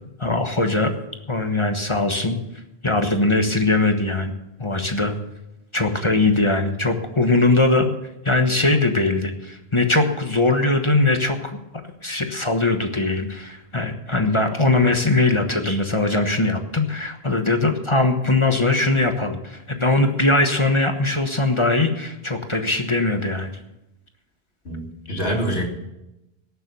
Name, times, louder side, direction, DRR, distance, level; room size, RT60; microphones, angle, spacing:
voice 1, 0.2-0.9 1.3-2.4 2.8-4.3 4.6-5.1 5.7-7.9 8.2-11.6 12.0-23.5, left 2 dB, 30° left, 5 dB, 1.2 m, -20 dB
voice 2, 24.6-25.6, equal, 70° left, 1 dB, 2.7 m, -25 dB
18.0 x 7.1 x 6.8 m, 0.91 s
omnidirectional pair, 1.1 m